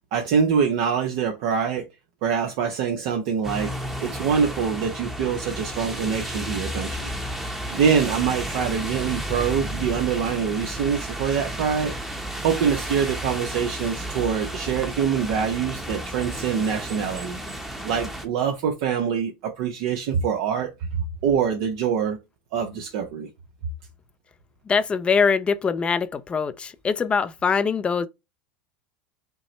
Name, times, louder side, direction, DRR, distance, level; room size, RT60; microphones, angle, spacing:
voice 1, 0.1-1.9 2.2-3.7 4.0-7.1 7.7-11.9 12.4-17.4 17.8-22.2 22.5-23.3, right 7 dB, 60° right, 0.8 m, -24 dB
sound 1, 3.4-18.3, right 1 dB, 5° right, 0.9 m, -32 dB
voice 2, 24.7-28.1, left 5 dB, 20° left, 0.4 m, -23 dB
5.4 x 2.1 x 3.0 m
supercardioid pair, 120°, 5 cm